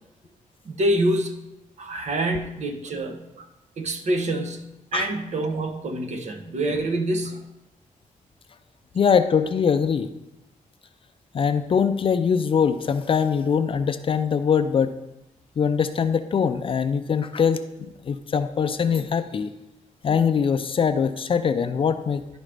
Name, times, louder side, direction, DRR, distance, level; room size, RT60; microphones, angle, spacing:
voice 1, 0.6-1.3 1.8-3.5 3.8-7.4, right 1 dB, 55° right, 6 dB, 0.8 m, -26 dB
voice 2, 8.9-10.1 11.3-14.9 15.6-19.5 20.0-22.2, left 6 dB, 40° left, 10 dB, 0.4 m, -22 dB
10.5 x 5.1 x 3.3 m, 0.91 s
wide cardioid pair, 155°, 14 cm